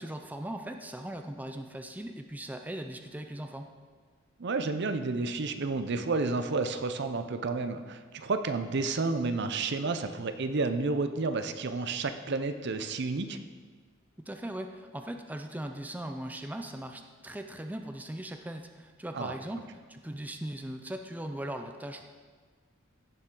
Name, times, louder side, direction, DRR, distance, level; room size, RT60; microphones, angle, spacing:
voice 1, 0.0-3.7 14.2-22.0, right 1 dB, 10° right, 5 dB, 0.5 m, -39 dB
voice 2, 4.4-13.4 19.1-19.3, right 3 dB, 60° right, 9 dB, 0.7 m, -31 dB
16.0 x 6.8 x 3.8 m, 1.5 s
head